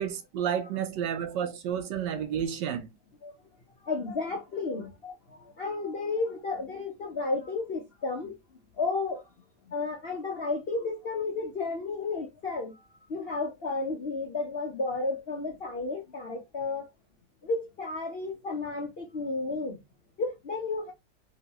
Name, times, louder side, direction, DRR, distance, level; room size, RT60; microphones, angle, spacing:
voice 1, 0.0-2.9, right 8 dB, 75° right, 1.2 m, -31 dB
voice 2, 3.8-8.4 8.8-9.2 9.7-12.8 13.1-16.9 17.4-19.8 20.2-20.9, left 3 dB, 70° left, 0.5 m, -32 dB
3.0 x 2.8 x 2.8 m
omnidirectional pair, 2.1 m